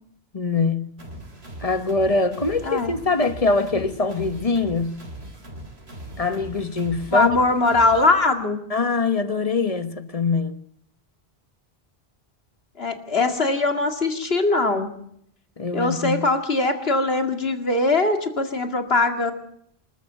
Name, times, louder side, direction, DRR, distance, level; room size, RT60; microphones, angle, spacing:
voice 1, 0.3-0.9 1.6-5.0 6.2-7.4 8.7-10.6 15.6-16.2, left 3 dB, 35° left, 1.2 m, -23 dB
sound 1, 1.0-8.1, right 1 dB, 80° right, 4.0 m, -40 dB
voice 2, 2.6-2.9 7.1-8.6 12.8-14.9 15.7-19.3, left 2 dB, 70° left, 2.4 m, -21 dB
25.5 x 13.5 x 8.0 m
omnidirectional pair, 1.1 m